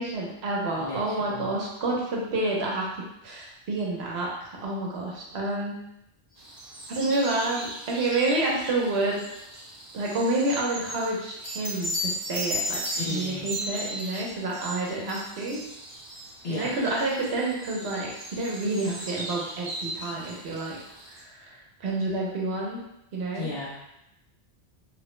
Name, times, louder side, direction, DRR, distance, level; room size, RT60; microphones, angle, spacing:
voice 1, 0.0-2.9 3.2-5.8 6.9-9.2 9.9-12.8 13.1-15.6 16.5-20.8 21.1-22.8 23.1-23.5, right 2 dB, 80° right, -3 dB, 1.0 m, -29 dB
voice 2, 0.8-1.5 12.9-13.4 16.4-17.0 23.3-23.8, left 2 dB, 75° left, -8 dB, 1.0 m, -35 dB
sound 1, 6.4-21.2, right 1 dB, 50° right, 0.7 m, -41 dB
sound 2, 6.6-6.8 7.1-7.3 7.6-7.7 11.4-17.2 17.6-17.8 18.1-18.2 18.6-18.7, equal, 15° left, 0.7 m, -34 dB
3.0 x 2.1 x 3.0 m, 0.84 s
omnidirectional pair, 1.1 m